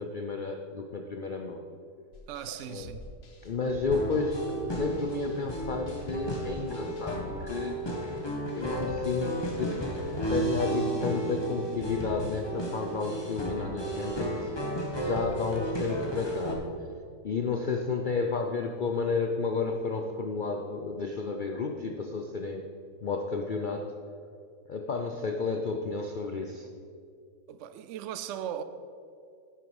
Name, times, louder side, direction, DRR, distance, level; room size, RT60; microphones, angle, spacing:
voice 1, 0.0-1.6 2.6-2.9 3.4-7.8 8.5-9.8 10.3-14.5 15.0-16.9 17.2-22.6 23.0-24.0 24.7-26.7, left 4 dB, 70° left, 0.4 m, -32 dB
sound 1, 2.1-7.4, left 3 dB, 45° left, 1.2 m, -47 dB
voice 2, 2.3-3.0 27.5-28.6, right 10 dB, 70° right, 0.7 m, -38 dB
sound 2, 3.9-16.5, right 1 dB, 15° left, 1.3 m, -33 dB
10.0 x 9.0 x 4.8 m
omnidirectional pair, 1.7 m